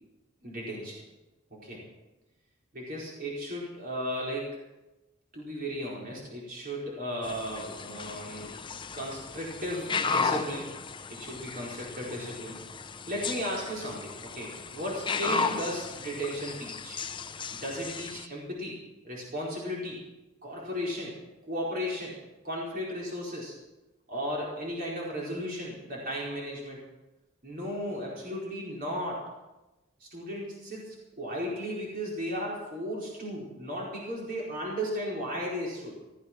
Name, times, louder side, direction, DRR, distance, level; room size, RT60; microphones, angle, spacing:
voice 1, 0.4-1.0 1.5-1.8 2.7-4.6 5.3-8.5 8.9-10.7 11.1-12.6 13.1-17.0 17.5-18.8 19.0-20.0 20.4-21.2 21.5-22.2 22.4-23.5 24.1-26.8 27.4-29.2 30.0-36.0, equal, 45° right, -4 dB, 4.6 m, -35 dB
sound 1, 7.2-18.3, left 5 dB, 25° left, 0.6 m, -35 dB
16.5 x 14.0 x 6.1 m, 1.0 s
head